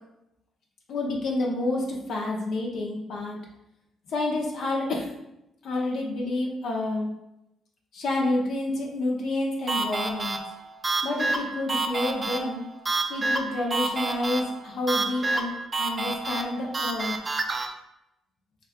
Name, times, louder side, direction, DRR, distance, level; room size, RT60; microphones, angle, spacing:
voice 1, 0.9-3.4 4.1-5.1 5.6-7.1 7.9-10.4 11.0-12.6 13.1-17.2, left 2 dB, 70° left, -1 dB, 0.7 m, -29 dB
sound 1, 9.7-17.7, right 3 dB, 30° right, 0.4 m, -29 dB
3.6 x 2.4 x 3.5 m, 0.86 s
cardioid pair, 90°, 0 cm